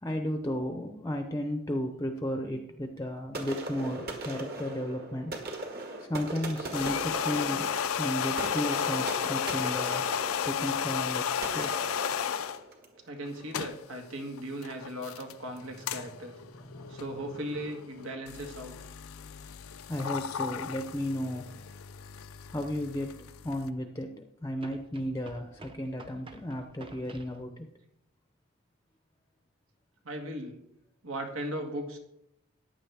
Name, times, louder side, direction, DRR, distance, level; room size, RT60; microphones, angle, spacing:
voice 1, 0.0-5.4 6.0-10.1 10.4-11.3 11.5-11.9 16.6-17.0 19.9-21.5 22.5-23.2 23.4-27.7, left 1 dB, 15° left, 5 dB, 0.7 m, -34 dB
sound 1, 3.3-13.0, right 2 dB, 45° right, 1.7 m, -39 dB
sound 2, 6.6-12.6 13.3-23.7, left 8 dB, 85° left, 0.5 m, -34 dB
voice 2, 13.1-16.4 16.9-18.8 30.0-30.6 31.0-32.0, right 1 dB, 85° right, 3 dB, 1.9 m, -37 dB
sound 3, 22.2-22.3 24.6-27.4, right 2 dB, 25° right, 0.7 m, -51 dB
14.5 x 9.7 x 3.5 m, 0.81 s
head